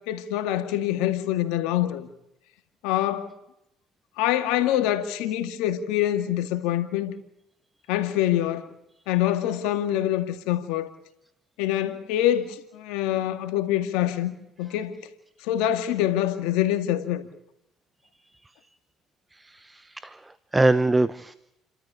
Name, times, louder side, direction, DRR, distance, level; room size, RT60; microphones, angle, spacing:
voice 1, 0.0-2.1 2.8-3.3 4.2-7.1 7.9-8.7 9.1-10.9 11.6-15.0 15.4-17.3, left 12 dB, 85° left, 2.1 m, -25 dB
voice 2, 19.3-21.3, right 2 dB, 15° right, 0.9 m, -24 dB
30.0 x 13.5 x 8.4 m
supercardioid pair, 70°, 0 cm